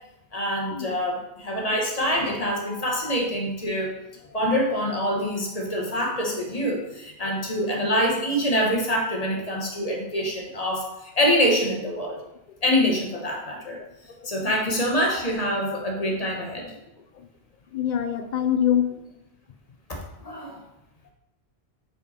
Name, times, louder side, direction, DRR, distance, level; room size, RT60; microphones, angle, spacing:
voice 1, 0.3-4.0 4.3-12.2 12.6-13.8 14.2-16.7 19.9-20.0 20.2-20.6, equal, 35° left, 0 dB, 1.2 m, -25 dB
voice 2, 17.7-18.9, left 9 dB, 55° left, 8 dB, 0.6 m, -24 dB
5.2 x 5.1 x 4.2 m, 0.92 s
omnidirectional pair, 1.1 m